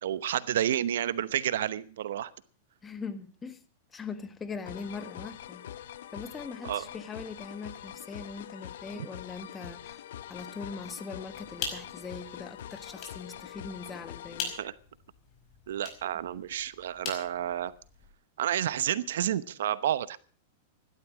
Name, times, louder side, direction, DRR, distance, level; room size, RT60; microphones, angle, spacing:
voice 1, 0.0-2.3 6.6-6.9 8.9-9.1 14.6-14.7 15.7-17.7 18.4-20.2, right 11 dB, 80° right, 0.9 m, -30 dB
voice 2, 2.8-3.6 3.9-5.6 6.1-10.0 10.3-14.5, left 4 dB, 15° left, 1.5 m, -41 dB
sound 1, 4.7-14.6, left 11 dB, 75° left, 0.8 m, -44 dB
sound 2, 11.3-18.1, left 5 dB, 35° left, 5.1 m, -43 dB
15.5 x 12.0 x 6.2 m
hypercardioid pair, 135°, 0 cm